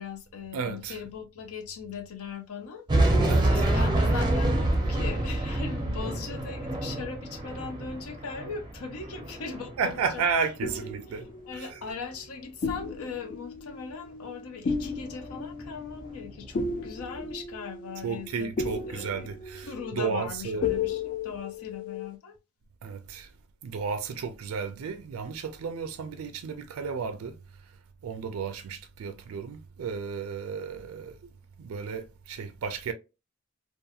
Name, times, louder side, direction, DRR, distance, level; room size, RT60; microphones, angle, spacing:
voice 1, 0.0-2.8 3.4-10.2 10.7-10.8 11.1-18.5 18.9-19.3 19.6-22.3, left 5 dB, 85° left, 0.6 m, -39 dB
voice 2, 0.5-1.0 3.3-3.7 9.8-11.3 11.5-11.8 18.0-20.7 22.8-23.3 23.6-27.3 28.0-31.2 31.6-32.9, right 5 dB, 80° right, 0.4 m, -33 dB
sound 1, 2.9-10.3 10.5-10.9 14.9-17.0, right 1 dB, 20° right, 0.5 m, -27 dB
sound 2, 9.0-10.0 10.6-12.3 12.6-22.1, left 4 dB, 40° left, 0.3 m, -35 dB
2.7 x 2.5 x 2.3 m
head